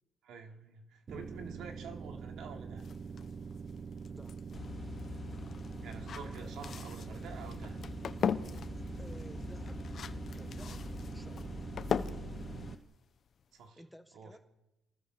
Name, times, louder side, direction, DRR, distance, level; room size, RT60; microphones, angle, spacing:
voice 1, 0.2-2.9 5.8-7.8 13.5-13.8 14.1-14.4, right 5 dB, 70° right, 4 dB, 3.6 m, -48 dB
sound 1, 1.1-12.7, right 5 dB, 35° right, 0.8 m, -44 dB
sound 2, 2.8-13.6, left 7 dB, 45° left, 1.2 m, -40 dB
voice 2, 4.1-4.4 8.5-8.7 9.0-9.8 10.2-10.9 11.1-11.6 13.8-14.4, equal, ahead, 8 dB, 1.6 m, -54 dB
sound 3, 4.5-12.7, left 4 dB, 30° left, 3.3 m, -45 dB
28.0 x 20.0 x 7.0 m, 0.91 s
cardioid pair, 120°, 0 cm